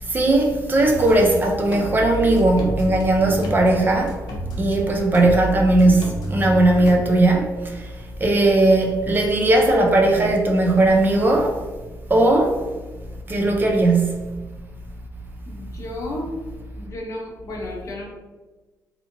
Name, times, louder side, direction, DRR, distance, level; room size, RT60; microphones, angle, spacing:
voice 1, 0.0-4.2 4.6-11.7 12.1-12.6 13.3-14.3, right 2 dB, 30° right, 0.4 m, -18 dB
sound 1, 0.9-1.3 1.7-4.8 5.1-7.0, right 2 dB, 80° left, 0.6 m, -29 dB
voice 2, 15.5-16.4 16.7-18.1, left 1 dB, 45° left, 0.8 m, -32 dB
2.8 x 2.5 x 2.5 m
cardioid pair, 120°, 7 cm